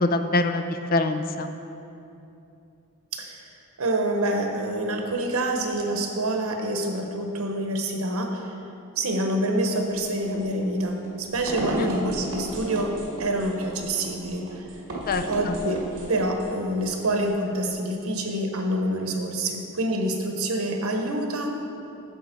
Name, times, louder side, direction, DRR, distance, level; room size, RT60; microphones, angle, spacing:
voice 1, 0.0-1.5 11.8-11.9 15.1-15.6, left 2 dB, 45° left, 8 dB, 0.5 m, -25 dB
voice 2, 3.8-8.4 9.0-12.9 13.2-14.4 15.3-15.8 16.1-21.5, right 1 dB, 85° right, 3 dB, 1.1 m, -26 dB
sound 1, 9.7-17.8, right 1 dB, 60° right, 1.9 m, -35 dB
10.5 x 7.1 x 4.5 m, 2.7 s
head